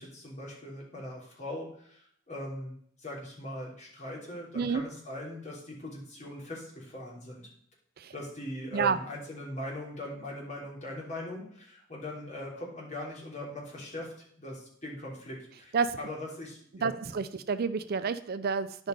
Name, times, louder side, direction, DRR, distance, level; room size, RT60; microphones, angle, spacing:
voice 1, 0.0-7.5 8.1-14.1 14.4-17.2 18.8-18.9, left 1 dB, 40° left, -3 dB, 3.2 m, -40 dB
voice 2, 16.8-18.9, right 5 dB, 50° right, 12 dB, 0.4 m, -29 dB
10.5 x 5.3 x 5.2 m, 0.64 s
head